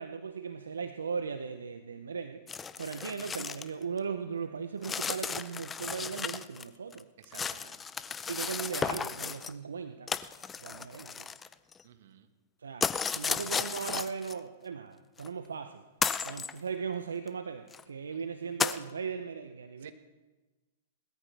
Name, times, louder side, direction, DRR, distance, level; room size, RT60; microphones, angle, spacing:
voice 1, 0.0-2.4 2.8-7.1 8.3-10.1 10.6-11.3 12.6-12.9 13.1-15.8 16.2-19.9, right 6 dB, 85° right, 9 dB, 0.7 m, -38 dB
sound 1, 2.5-3.7 4.0-4.1 4.8-6.6 6.9-9.5 10.1-11.8 12.8-14.3 15.2-15.3 16.0-16.5 17.3-17.4 17.7-17.8 18.6-18.8, left 6 dB, 15° left, 0.5 m, -34 dB
voice 2, 7.2-7.8 11.8-12.3 18.1-18.3 19.8-19.9, right 10 dB, 65° right, 9 dB, 1.5 m, -53 dB
20.0 x 13.5 x 3.4 m, 1.2 s
hypercardioid pair, 115°, 0 cm